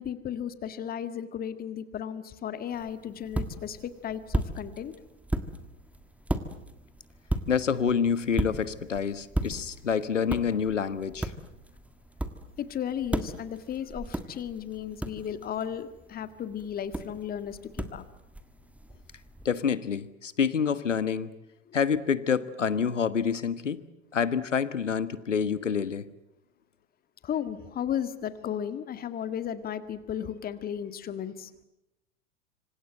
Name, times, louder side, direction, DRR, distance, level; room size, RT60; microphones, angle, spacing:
voice 1, 0.0-4.9 12.6-18.0 27.2-31.5, left 9 dB, 25° left, 12 dB, 1.8 m, -35 dB
sound 1, 2.7-19.5, right 1 dB, 5° right, 1.7 m, -36 dB
voice 2, 7.5-11.3 19.4-21.3 21.7-23.8 24.1-26.0, left 7 dB, 75° left, 16 dB, 1.4 m, -27 dB
26.5 x 26.0 x 7.9 m, 0.89 s
figure-of-eight pair, 90°, 37 cm